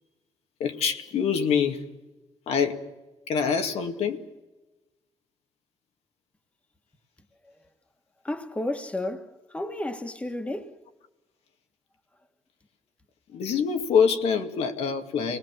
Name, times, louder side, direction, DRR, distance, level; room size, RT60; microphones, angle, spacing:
voice 1, 0.6-1.9 2.5-2.8 3.3-4.2 13.3-15.4, left 6 dB, 80° left, 2.2 m, -25 dB
voice 2, 8.2-10.8, left 1 dB, 10° left, 1.6 m, -32 dB
30.0 x 19.5 x 7.5 m
cardioid pair, 140°, 10 cm